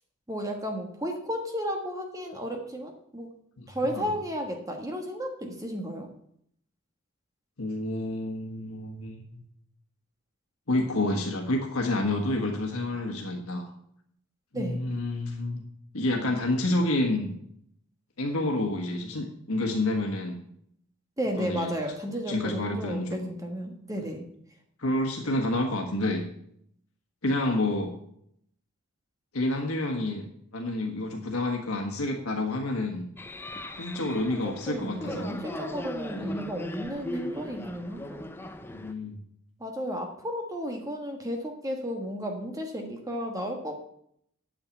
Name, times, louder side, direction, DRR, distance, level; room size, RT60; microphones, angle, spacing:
voice 1, 0.3-3.3 3.7-6.1 14.5-14.8 21.2-24.2 34.0-38.3 39.6-43.7, equal, 15° right, 3 dB, 1.3 m, -33 dB
voice 2, 3.6-4.1 7.6-9.4 10.7-13.7 14.5-15.6 15.9-17.3 18.2-20.4 21.4-21.7 22.3-23.3 24.8-26.3 27.2-28.0 29.3-30.3 30.5-33.1 33.7-35.4 36.2-36.4 38.7-39.2, left 1 dB, 90° left, 1 dB, 1.5 m, -29 dB
sound 1, 33.2-38.9, left 1 dB, 10° left, 0.5 m, -39 dB
8.9 x 6.5 x 8.5 m, 0.71 s
head